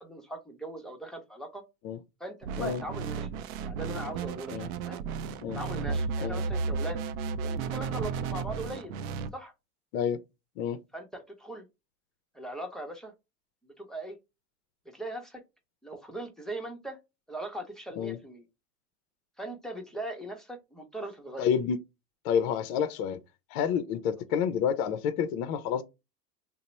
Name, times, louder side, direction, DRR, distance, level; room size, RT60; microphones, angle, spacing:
voice 1, 0.0-1.6 2.2-3.3 3.6-5.0 5.5-7.0 7.4-8.9 9.3-9.5 10.9-11.6 12.3-13.1 13.6-14.2 14.9-15.4 15.8-17.0 17.3-18.5 19.4-21.5, right 1 dB, ahead, 0.6 m, -40 dB
sound 1, 2.4-9.3, right 5 dB, 65° right, 0.5 m, -33 dB
voice 2, 21.4-21.8 22.2-23.2 23.5-25.8, left 8 dB, 50° left, 0.5 m, -29 dB
2.8 x 2.0 x 4.1 m
hypercardioid pair, 110°, 45 cm